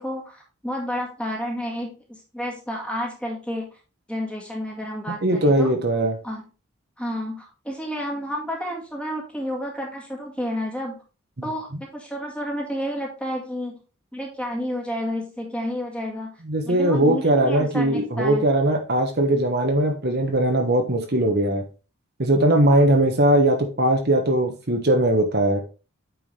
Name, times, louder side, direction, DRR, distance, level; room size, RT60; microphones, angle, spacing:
voice 1, 0.0-3.8 4.1-5.7 6.2-6.4 7.0-11.0 11.4-13.8 14.1-16.3 16.7-18.5, equal, 5° left, 0 dB, 1.9 m, -30 dB
voice 2, 5.2-6.2 16.4-21.6 22.2-25.6, right 1 dB, 45° right, 4 dB, 1.2 m, -20 dB
8.9 x 4.8 x 3.4 m, 0.33 s
head